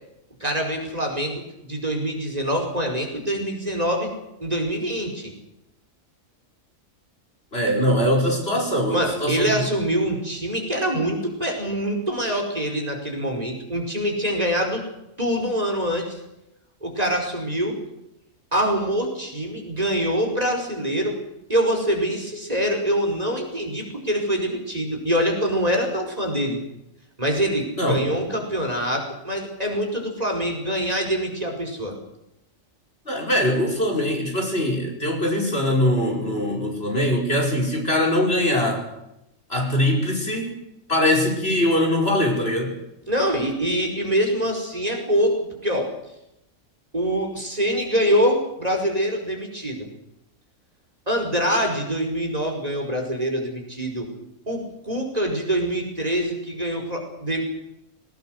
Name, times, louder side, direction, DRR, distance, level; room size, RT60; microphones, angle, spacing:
voice 1, 0.4-4.1 4.4-5.3 8.9-14.8 15.2-16.2 16.8-17.8 18.5-21.2 21.5-26.6 27.2-32.0 43.1-45.9 46.9-49.9 51.1-54.1 54.5-57.4, equal, 30° right, 2 dB, 5.2 m, -24 dB
voice 2, 7.5-9.6 27.8-28.0 33.1-38.9 39.5-40.5 40.9-42.7, left 1 dB, 50° left, 1 dB, 5.4 m, -22 dB
21.0 x 19.5 x 7.9 m, 0.86 s
omnidirectional pair, 1.4 m